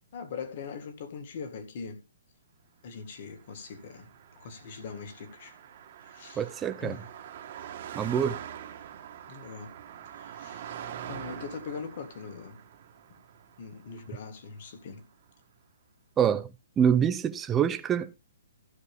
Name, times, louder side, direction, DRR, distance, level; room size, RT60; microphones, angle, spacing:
voice 1, 0.1-2.0 2.8-4.1 4.4-5.5 6.1-6.5 6.8-7.1 8.0-8.1 9.3-9.7 10.2-10.8 11.1-12.6 13.6-15.0, left 5 dB, 35° left, 1.9 m, -41 dB
Car passing by, 3.3-14.8, right 9 dB, 35° right, 1.4 m, -44 dB
voice 2, 6.4-7.0 7.9-8.4 16.2-16.5 16.8-18.1, right 8 dB, 10° right, 0.5 m, -25 dB
15.0 x 6.4 x 3.5 m
hypercardioid pair, 175°, 0 cm